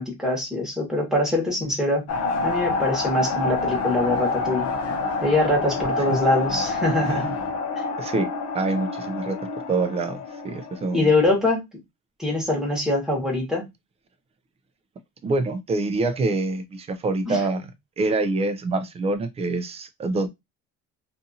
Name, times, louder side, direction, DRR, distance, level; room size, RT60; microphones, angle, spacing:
voice 1, 0.0-2.1 2.4-4.7 5.2-7.3 10.9-11.6 12.2-13.6 17.3-17.4, left 2 dB, ahead, 1.1 m, -23 dB
sound 1, 2.1-11.0, left 3 dB, 60° left, 0.7 m, -28 dB
voice 2, 7.0-7.3 8.0-8.3 8.5-9.4 9.7-11.1 15.2-17.7 18.0-20.3, right 3 dB, 20° right, 0.3 m, -26 dB
2.6 x 2.5 x 2.6 m
cardioid pair, 135°, 29 cm